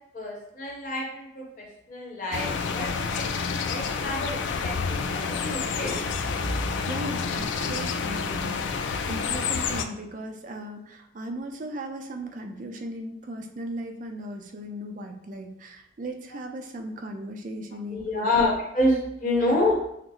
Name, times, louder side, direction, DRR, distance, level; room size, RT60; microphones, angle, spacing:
voice 1, 0.1-6.0 6.4-6.6 17.9-19.8, left 1 dB, 45° left, -3 dB, 1.1 m, -28 dB
sound 1, 2.3-9.9, left 5 dB, 80° left, 0.3 m, -29 dB
voice 2, 6.9-8.6 9.1-18.3 19.5-19.6, right 1 dB, 45° right, 4 dB, 0.5 m, -37 dB
5.6 x 2.0 x 3.1 m, 0.77 s
head